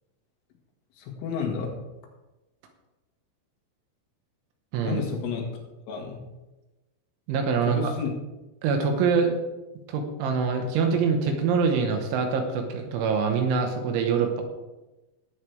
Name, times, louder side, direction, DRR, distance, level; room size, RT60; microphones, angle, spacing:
voice 1, 1.0-1.8 4.8-5.5 5.9-6.2 7.7-8.1, left 6 dB, 80° left, 0 dB, 4.3 m, -30 dB
voice 2, 7.3-7.9 8.6-9.4 9.9-14.4, right 5 dB, 80° right, 4 dB, 3.6 m, -24 dB
18.0 x 8.2 x 3.4 m, 1.1 s
omnidirectional pair, 5.7 m